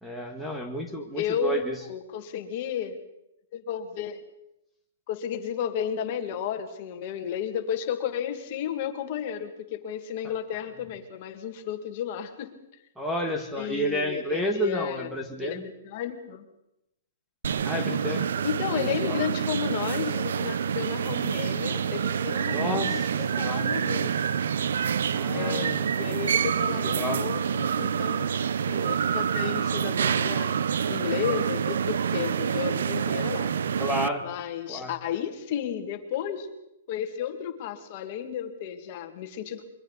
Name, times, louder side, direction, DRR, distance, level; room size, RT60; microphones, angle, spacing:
voice 1, 0.0-1.7 13.0-15.7 17.6-18.3 18.7-19.2 22.5-23.1 23.4-23.7 25.1-25.9 26.7-27.3 33.8-34.3 34.7-34.9, equal, 5° right, 3 dB, 1.6 m, -31 dB
voice 2, 1.1-1.6 1.9-3.0 3.5-4.2 5.1-12.5 13.6-16.4 18.4-24.2 25.3-28.4 28.7-30.6 30.9-33.5 34.2-36.5 36.9-39.6, left 9 dB, 40° left, 6 dB, 2.2 m, -33 dB
sound 1, 17.4-34.1, right 7 dB, 75° right, 0.7 m, -27 dB
28.0 x 23.5 x 4.1 m, 0.84 s
hypercardioid pair, 160°, 0 cm